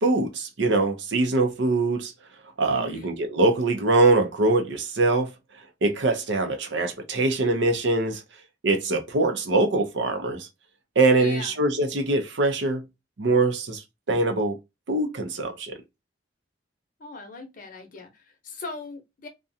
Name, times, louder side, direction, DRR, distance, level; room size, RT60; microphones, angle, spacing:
voice 1, 0.0-2.1 2.6-5.3 5.8-8.2 8.6-10.5 11.0-12.8 13.2-14.6 14.9-15.8, right 2 dB, 80° right, 0.6 m, -23 dB
voice 2, 2.7-3.2 11.2-11.6 17.0-19.3, left 3 dB, 50° left, 0.7 m, -40 dB
2.4 x 2.2 x 2.6 m
head